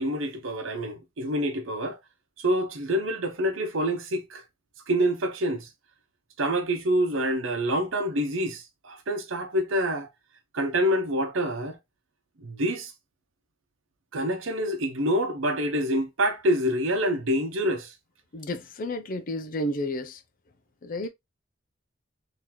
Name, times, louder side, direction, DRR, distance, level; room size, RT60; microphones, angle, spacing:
voice 1, 0.0-2.0 2.4-4.4 4.9-5.7 6.4-10.1 10.5-11.8 12.4-12.9 14.1-17.9, equal, 75° right, 0.9 m, -26 dB
voice 2, 18.3-20.2 20.8-21.1, left 1 dB, 45° left, 0.5 m, -31 dB
3.8 x 2.8 x 2.9 m
head